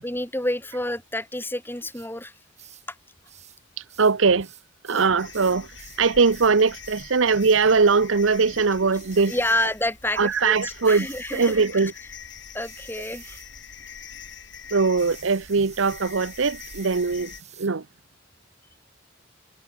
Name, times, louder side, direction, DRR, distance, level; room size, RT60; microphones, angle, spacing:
voice 1, 0.0-2.3 2.9-3.0 4.9-5.2 9.2-12.1 12.5-13.4, left 1 dB, 10° left, 4.0 m, -29 dB
sound 1, 1.9-2.1 2.6-2.9 3.3-3.6 3.9-6.0 6.3-6.6 6.8-7.1 7.4-7.6 8.9-9.6 10.8-11.6 12.6-13.5 15.0-17.7, right 11 dB, 35° right, 7.9 m, -48 dB
voice 2, 4.0-4.5 4.9-5.7 6.0-9.3 10.2-11.1 11.3-11.9 14.7-17.3 17.6-17.8, right 4 dB, 75° right, 0.8 m, -20 dB
sound 2, 5.2-17.4, left 7 dB, 60° left, 7.1 m, -44 dB
head